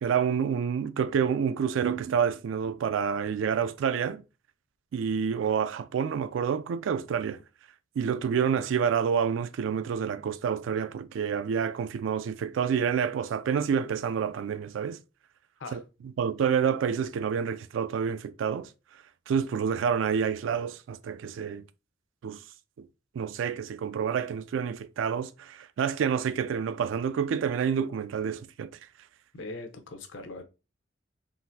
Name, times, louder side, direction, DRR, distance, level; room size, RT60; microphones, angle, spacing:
voice 1, 0.0-4.2 4.9-7.4 8.0-15.0 15.7-15.8 16.2-18.7 19.3-21.6 22.2-22.4 22.8-22.9 23.1-28.7, right 7 dB, 75° right, 0.3 m, -28 dB
voice 2, 29.3-30.4, left 2 dB, 75° left, 0.6 m, -40 dB
3.8 x 2.4 x 2.6 m
head